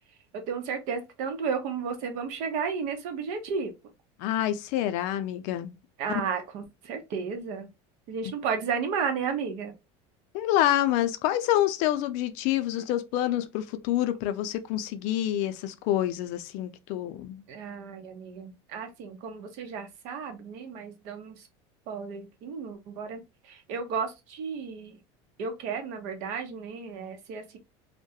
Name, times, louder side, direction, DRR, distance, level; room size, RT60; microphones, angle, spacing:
voice 1, 0.3-3.7 6.0-7.7 8.1-9.7 17.5-21.3 21.9-25.0 25.4-27.6, right 6 dB, 60° right, 0.7 m, -33 dB
voice 2, 4.2-5.7 6.1-6.2 10.3-17.4, left 12 dB, 60° left, 0.4 m, -27 dB
2.3 x 2.1 x 2.6 m
cardioid pair, 145°, 14 cm